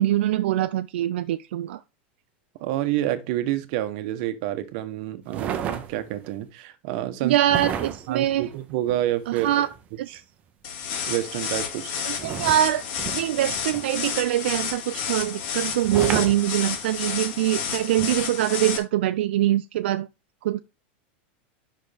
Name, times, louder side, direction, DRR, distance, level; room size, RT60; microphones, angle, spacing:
voice 1, 0.0-1.8 7.2-8.5 9.3-9.7 10.1-10.2 12.1-12.8 13.1-20.1 20.4-20.6, right 13 dB, 75° right, 0.4 m, -23 dB
voice 2, 2.6-7.4 8.1-9.6 10.1-10.2 11.1-12.0, right 13 dB, 45° right, 1.0 m, -28 dB
sound 1, 5.3-6.3 7.4-9.8 12.2-14.1 15.8-17.0 18.0-18.1, right 8 dB, 25° right, 0.8 m, -33 dB
sound 2, 10.6-18.8, left 7 dB, 55° left, 2.3 m, -31 dB
10.0 x 5.9 x 3.4 m
supercardioid pair, 165°, 6 cm